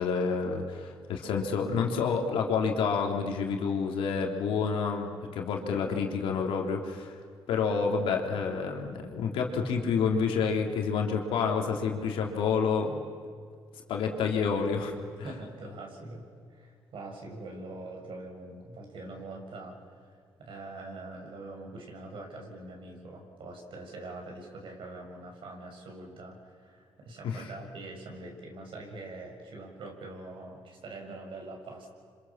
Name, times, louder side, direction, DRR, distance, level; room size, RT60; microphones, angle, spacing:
voice 1, 0.0-7.1 7.5-12.9 13.9-15.3 27.2-27.4, left 5 dB, 90° left, 2 dB, 3.1 m, -29 dB
voice 2, 15.2-31.9, right 2 dB, 70° right, 1 dB, 6.6 m, -44 dB
28.0 x 26.0 x 7.3 m, 2.1 s
cardioid pair, 70°, 9 cm